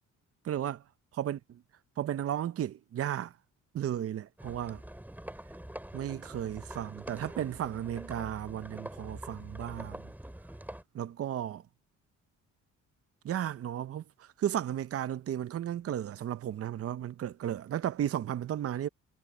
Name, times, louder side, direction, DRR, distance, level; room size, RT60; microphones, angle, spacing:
voice 1, 0.4-0.8 1.2-1.4 2.0-3.3 3.7-4.8 5.9-10.0 10.9-11.6 13.2-18.9, right 11 dB, 50° right, 0.7 m, -34 dB
sound 1, 4.4-10.8, right 1 dB, 5° right, 3.2 m, -45 dB
cardioid pair, 90°, 30 cm